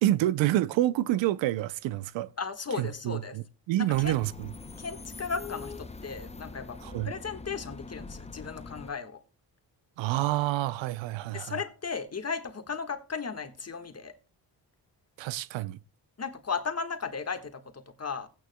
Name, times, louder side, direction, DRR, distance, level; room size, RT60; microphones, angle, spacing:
voice 1, 0.0-2.3 2.8-4.5 6.8-7.1 10.0-11.5 15.2-15.8, right 14 dB, 80° right, 0.6 m, -28 dB
voice 2, 2.4-3.4 3.8-4.2 4.8-6.8 7.0-9.2 11.3-14.1 16.2-18.3, left 5 dB, 35° left, 1.6 m, -35 dB
sound 1, 3.9-8.9, left 4 dB, 15° left, 0.6 m, -43 dB
16.5 x 9.1 x 2.2 m
supercardioid pair, 55°, 44 cm